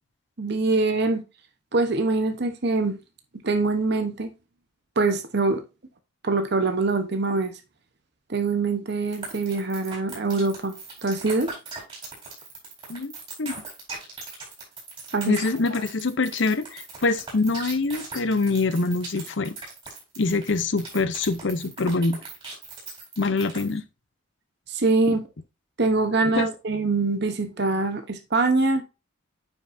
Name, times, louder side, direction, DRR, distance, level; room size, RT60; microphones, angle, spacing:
voice 1, 0.4-1.2 1.7-3.0 3.4-4.3 5.0-5.6 6.2-7.6 8.3-10.7 11.0-11.5 15.1-15.4 24.7-25.2 25.8-28.8, right 3 dB, 55° right, 0.9 m, -24 dB
sound 1, 9.1-23.8, right 4 dB, 25° right, 4.3 m, -39 dB
voice 2, 15.3-19.6 20.2-22.2 23.2-23.8 25.1-25.2 26.4-26.5, left 3 dB, 60° left, 0.6 m, -24 dB
9.2 x 5.6 x 2.6 m
head